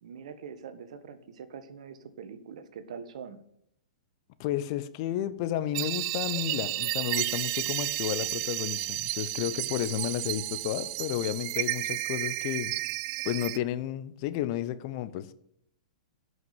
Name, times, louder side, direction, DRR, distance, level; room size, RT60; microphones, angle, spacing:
voice 1, 0.0-3.4, right 6 dB, 65° right, 1.6 m, -43 dB
voice 2, 4.4-12.7 13.2-15.3, left 12 dB, 45° left, 0.9 m, -32 dB
sound 1, 5.7-13.6, right 20 dB, 45° right, 0.4 m, -32 dB
13.0 x 6.4 x 9.4 m
hypercardioid pair, 110°, 4 cm